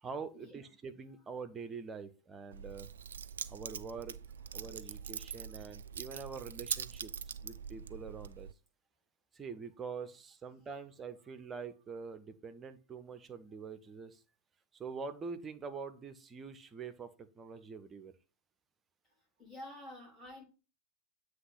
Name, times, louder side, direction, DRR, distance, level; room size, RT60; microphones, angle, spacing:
voice 1, 0.0-2.9 3.5-4.2 4.5-7.1 7.4-8.5 9.3-14.2 14.8-18.1, right 5 dB, 20° right, 10 dB, 0.7 m, -45 dB
Keys jangling, 2.5-8.5, right 7 dB, 65° right, 0.3 m, -43 dB
voice 2, 19.4-20.4, left 1 dB, 10° left, -5 dB, 3.5 m, -49 dB
7.7 x 3.1 x 5.8 m, 0.34 s
figure-of-eight pair, 90°, 0 cm